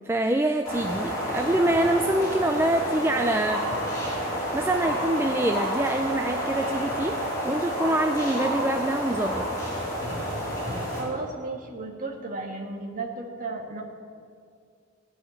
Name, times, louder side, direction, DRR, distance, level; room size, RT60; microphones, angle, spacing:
voice 1, 0.1-3.6 4.5-7.2 7.4-9.5, right 1 dB, 10° right, 5 dB, 0.4 m, -25 dB
sound 1, 0.6-11.0, equal, 15° left, 3.9 m, -29 dB
voice 2, 11.0-13.8, right 3 dB, 40° right, 1 dB, 1.7 m, -34 dB
16.5 x 5.8 x 9.6 m, 2.2 s
head